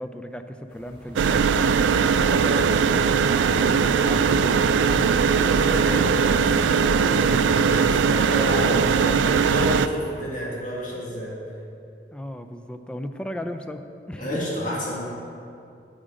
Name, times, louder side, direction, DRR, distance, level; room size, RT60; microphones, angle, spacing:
voice 1, 0.0-1.5 1.9-2.2 3.3-5.3 5.8-6.0 7.7-8.0 8.6-9.3 12.1-14.5, equal, 5° left, 8 dB, 0.4 m, -36 dB
sound 1, 0.7-8.8, equal, 25° right, 2.6 m, -47 dB
sound 2, 1.2-9.9, right 6 dB, 90° right, 0.3 m, -20 dB
voice 2, 2.2-3.0 5.3-7.9 8.2-11.4 14.2-15.0, equal, 45° left, -6 dB, 2.0 m, -31 dB
8.8 x 5.0 x 7.6 m, 2.6 s
head